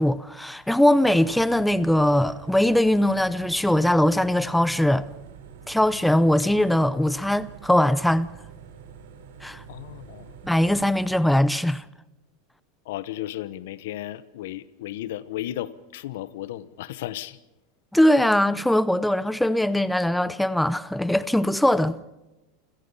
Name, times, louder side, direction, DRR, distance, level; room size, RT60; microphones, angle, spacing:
voice 1, 0.0-5.1 5.7-8.3 9.4-9.6 10.4-11.8 17.9-22.0, left 1 dB, 5° left, 0.7 m, -21 dB
sound 1, 1.1-11.3, right 7 dB, 85° right, 3.8 m, -46 dB
voice 2, 9.7-10.4 12.8-17.4, left 13 dB, 75° left, 1.0 m, -34 dB
28.5 x 16.5 x 5.6 m
supercardioid pair, 130°, 0 cm